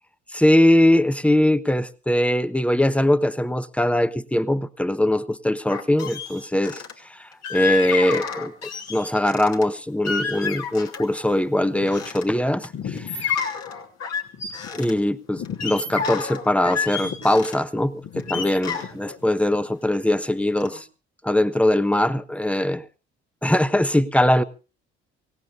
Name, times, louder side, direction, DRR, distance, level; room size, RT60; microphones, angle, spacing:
voice 1, 0.3-6.8 7.1-13.3 14.7-20.9 21.2-22.8 23.4-24.4, left 1 dB, 5° left, 13 dB, 1.2 m, -21 dB
sound 1, 5.7-6.9 7.4-9.7 10.0-11.2 11.6-12.2 12.6-14.9 15.4-17.6 18.0-20.3 20.6-20.8, left 6 dB, 55° left, 3.0 m, -30 dB
24.5 x 18.0 x 2.5 m, 0.33 s
hypercardioid pair, 50°, 31 cm